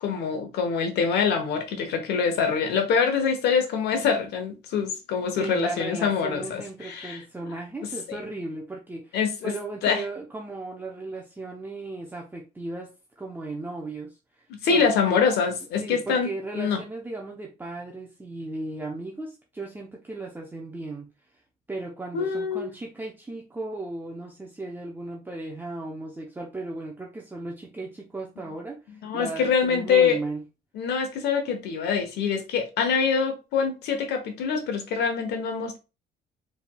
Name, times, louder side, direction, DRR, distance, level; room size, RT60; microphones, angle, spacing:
voice 1, 0.0-7.2 8.1-8.2 9.1-9.5 9.8-10.0 14.6-16.3 16.5-16.8 22.1-22.7 29.0-30.2 30.7-35.8, left 6 dB, 75° left, 1.1 m, -25 dB
voice 2, 5.2-15.3 15.8-21.1 21.7-30.4, right 2 dB, 10° right, 0.7 m, -36 dB
4.6 x 3.4 x 2.3 m
cardioid pair, 110°, 17 cm